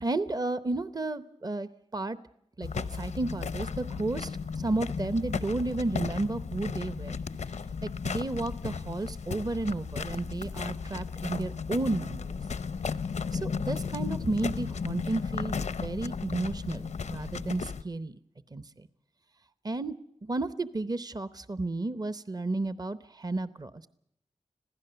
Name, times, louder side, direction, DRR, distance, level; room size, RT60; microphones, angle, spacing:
voice 1, 0.0-2.2 2.6-7.1 7.8-12.4 13.3-18.2 18.5-18.9 19.6-19.9 20.2-23.9, right 2 dB, 35° right, 14 dB, 0.8 m, -32 dB
sound 1, 2.6-17.8, left 5 dB, 85° left, 0.7 m, -35 dB
26.0 x 16.0 x 6.9 m, 0.78 s
wide cardioid pair, 80°, 12 cm